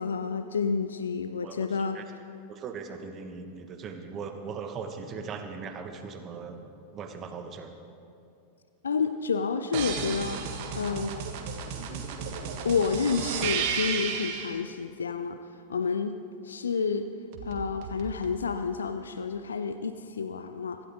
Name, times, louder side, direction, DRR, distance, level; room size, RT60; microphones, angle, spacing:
voice 1, 0.0-2.0 8.8-10.5 10.7-11.2 12.6-15.4 15.7-16.1 16.4-17.1 17.4-20.8, left 5 dB, 70° left, 10 dB, 0.6 m, -29 dB
voice 2, 2.5-6.6 6.9-7.7, right 5 dB, 30° right, 6 dB, 1.5 m, -39 dB
sound 1, 9.7-14.6 17.3-18.4, right 6 dB, 45° right, 1.7 m, -33 dB
25.0 x 13.0 x 3.8 m, 2.5 s
figure-of-eight pair, 90°, 0 cm